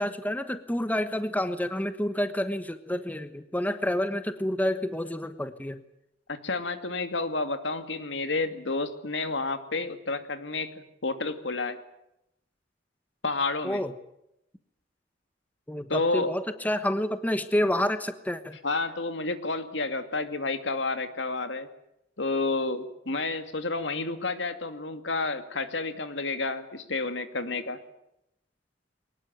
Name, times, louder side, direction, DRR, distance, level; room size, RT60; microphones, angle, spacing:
voice 1, 0.0-5.8 13.6-13.9 15.7-18.6, left 1 dB, 10° left, 10 dB, 1.2 m, -29 dB
voice 2, 6.3-11.8 13.2-13.8 15.9-16.3 18.6-21.7 22.2-27.8, left 3 dB, 70° left, 9 dB, 2.4 m, -30 dB
23.0 x 20.0 x 9.2 m, 0.83 s
head